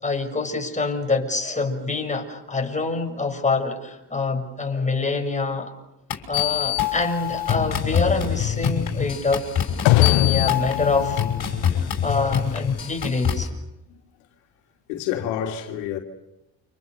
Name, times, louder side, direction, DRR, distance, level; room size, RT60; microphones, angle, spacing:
voice 1, 0.0-5.7 6.3-9.4 10.0-11.2 11.7-13.5, left 3 dB, 15° left, 6.9 m, -25 dB
sound 1, 6.1-13.5, left 9 dB, 50° left, 6.3 m, -25 dB
sound 2, 7.5-12.6, left 16 dB, 65° left, 1.3 m, -24 dB
voice 2, 9.7-10.0 13.9-14.0 14.9-16.0, left 10 dB, 85° left, 3.0 m, -29 dB
29.5 x 27.0 x 7.0 m
supercardioid pair, 75°, 49 cm